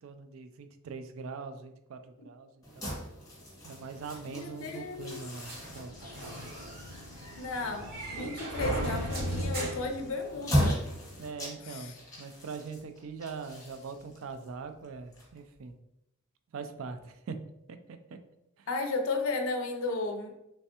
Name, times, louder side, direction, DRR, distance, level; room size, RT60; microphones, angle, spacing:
voice 1, 0.0-2.9 3.6-5.9 11.2-15.7 16.5-17.4 17.7-18.2 18.6-18.7, right 5 dB, 60° right, 9 dB, 0.3 m, -42 dB
sound 1, 2.6-15.7, equal, 15° left, 0.9 m, -37 dB
voice 2, 4.3-5.2 7.4-10.9 11.7-11.9 18.7-20.3, left 3 dB, 65° left, 5 dB, 0.4 m, -34 dB
sound 2, 5.4-10.7, equal, 40° right, 0.7 m, -37 dB
3.2 x 3.2 x 2.8 m, 0.83 s
head